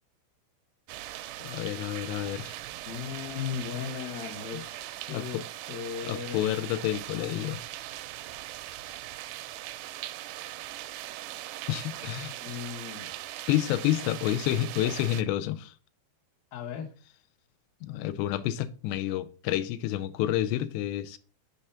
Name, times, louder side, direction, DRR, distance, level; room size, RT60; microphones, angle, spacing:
sound 1, 0.9-15.2, right 15 dB, 85° right, 2.6 m, -40 dB
voice 1, 1.4-2.6 4.5-4.6 5.1-5.4 6.0-7.6 11.7-12.3 13.5-15.7 17.8-21.2, left 13 dB, 90° left, 2.7 m, -29 dB
voice 2, 2.9-6.5 12.4-13.1 16.5-16.9, left 8 dB, 70° left, 2.5 m, -37 dB
6.7 x 4.7 x 4.2 m
omnidirectional pair, 4.8 m